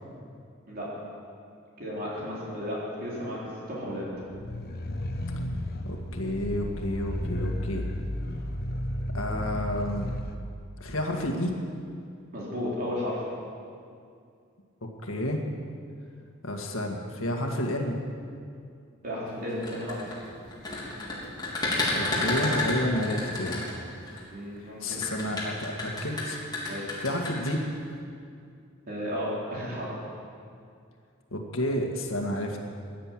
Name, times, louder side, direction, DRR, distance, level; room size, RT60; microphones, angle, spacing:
voice 1, 1.8-3.4 3.7-4.1 12.3-13.2 19.0-20.1 24.3-25.0 26.6-26.9 28.9-30.0, equal, 50° right, -6 dB, 4.0 m, -33 dB
sound 1, 4.2-10.3, left 1 dB, 50° left, 1.2 m, -33 dB
voice 2, 5.9-7.8 9.1-10.1 10.8-11.6 15.0-15.4 16.4-18.0 21.9-23.6 24.8-26.4 27.0-27.6 31.3-32.7, left 1 dB, 75° left, 2 dB, 1.9 m, -30 dB
sound 2, 19.5-24.2 24.9-27.5, left 2 dB, 20° left, 3.6 m, -30 dB
16.5 x 10.5 x 7.6 m, 2.4 s
head